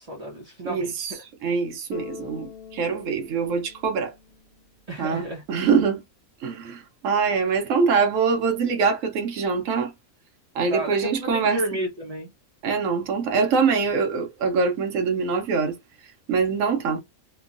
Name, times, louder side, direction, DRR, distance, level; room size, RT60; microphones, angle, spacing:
voice 1, 0.0-1.2 4.9-5.4 10.7-12.3, right 1 dB, 35° right, 0.6 m, -32 dB
voice 2, 0.6-1.1 1.4-4.1 5.0-6.0 6.4-9.9 10.5-11.8 12.6-15.8 16.3-17.0, right 5 dB, 70° right, 1.1 m, -24 dB
Bass guitar, 1.9-5.0, left 5 dB, 75° left, 1.1 m, -43 dB
3.0 x 2.2 x 2.4 m
omnidirectional pair, 1.5 m